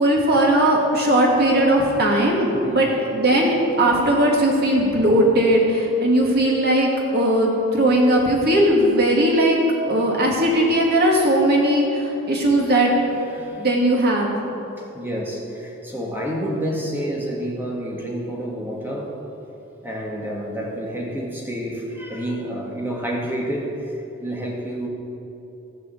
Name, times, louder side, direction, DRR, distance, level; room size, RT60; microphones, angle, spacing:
voice 1, 0.0-12.9 13.5-14.4, right 1 dB, 50° right, -2 dB, 2.4 m, -18 dB
voice 2, 13.3-13.7 14.9-19.1 19.8-23.9 24.2-24.9, equal, 10° right, -3 dB, 2.0 m, -29 dB
16.0 x 5.5 x 8.0 m, 3.0 s
head